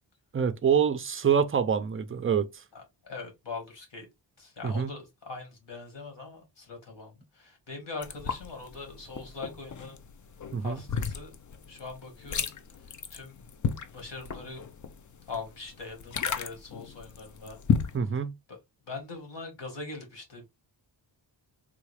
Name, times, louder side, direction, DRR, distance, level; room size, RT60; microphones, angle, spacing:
voice 1, 0.3-2.5 4.6-4.9 10.5-10.8 17.9-18.4, right 7 dB, 30° right, 0.4 m, -26 dB
voice 2, 2.7-4.0 4.4-10.0 10.6-11.3 11.7-12.5 13.1-13.4 13.9-14.6 15.3-17.6 18.5-18.6 18.9-20.5, left 4 dB, 65° left, 1.7 m, -42 dB
sound 1, 8.0-18.0, left 7 dB, 45° left, 0.4 m, -34 dB
3.6 x 2.3 x 3.2 m
wide cardioid pair, 115°, 46 cm